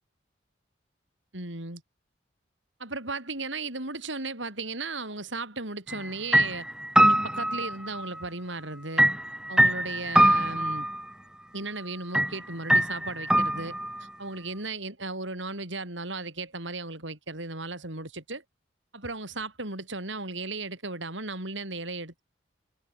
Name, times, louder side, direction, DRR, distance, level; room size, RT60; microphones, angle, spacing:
voice 1, 1.3-1.8 2.8-6.7 7.0-9.1 9.5-10.9 11.5-18.4 18.9-22.2, right 3 dB, 80° right, 6.9 m, -36 dB
sound 1, 5.9-6.1 6.3-8.2 9.0-11.0 12.1-12.3 12.7-14.0, right 1 dB, 5° right, 1.3 m, -23 dB
head